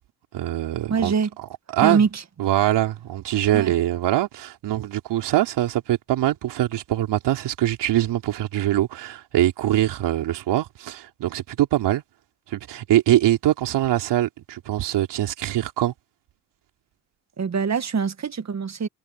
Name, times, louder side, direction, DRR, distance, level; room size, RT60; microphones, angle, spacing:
voice 1, 0.3-1.1 1.4-1.5 1.7-2.0 2.4-12.0 12.5-15.9, right 13 dB, 75° right, 3.3 m, -23 dB
voice 2, 0.9-1.3 1.8-2.2 3.5-3.7 17.4-18.9, right 6 dB, 40° right, 1.7 m, -23 dB
supercardioid pair, 70°, 42 cm